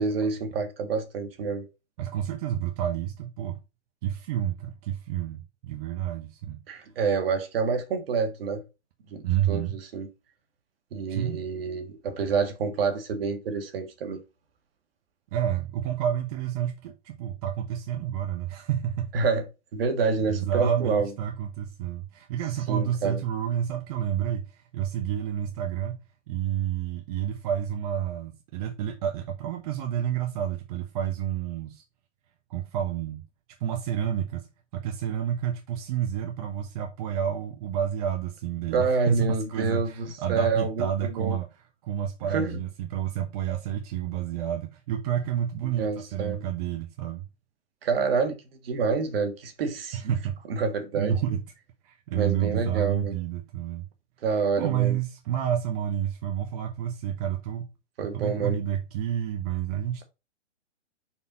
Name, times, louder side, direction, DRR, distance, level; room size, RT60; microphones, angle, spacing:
voice 1, 0.0-1.7 6.7-8.6 9.1-10.1 10.9-14.2 19.1-19.4 19.7-21.1 22.7-23.2 38.7-41.4 42.3-42.6 45.8-46.4 47.8-48.4 48.6-50.1 50.5-51.3 52.1-53.1 54.2-55.0 58.0-58.6, right 4 dB, 55° right, 1.7 m, -27 dB
voice 2, 2.0-3.6 4.0-6.6 9.2-9.8 11.1-11.4 15.3-19.1 20.3-31.8 32.5-33.2 33.6-34.5 34.7-41.5 41.8-47.2 49.9-50.4 50.9-51.4 51.8-53.8 54.6-57.7 58.1-60.0, right 10 dB, 35° right, 0.7 m, -29 dB
5.4 x 4.4 x 4.1 m
hypercardioid pair, 125°, 35 cm